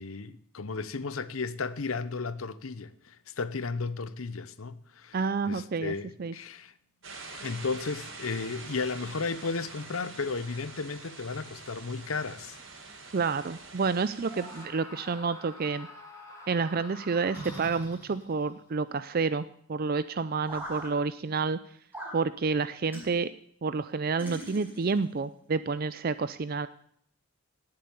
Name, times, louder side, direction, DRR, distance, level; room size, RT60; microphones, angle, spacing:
voice 1, 0.0-6.7 7.4-12.6, left 4 dB, 85° left, 0.8 m, -34 dB
voice 2, 5.1-5.9 6.2-6.3 13.1-15.9 16.5-21.6 22.1-23.3 23.6-26.7, right 4 dB, 45° right, 0.5 m, -29 dB
sound 1, 7.0-14.6, right 3 dB, 65° right, 3.8 m, -45 dB
Screaming, 14.2-18.0, left 1 dB, 15° left, 3.1 m, -47 dB
sound 2, 17.3-18.5 20.5-20.9 21.9-22.2 22.9-23.1 24.2-25.0, right 1 dB, 10° right, 5.9 m, -41 dB
18.0 x 7.7 x 7.0 m
head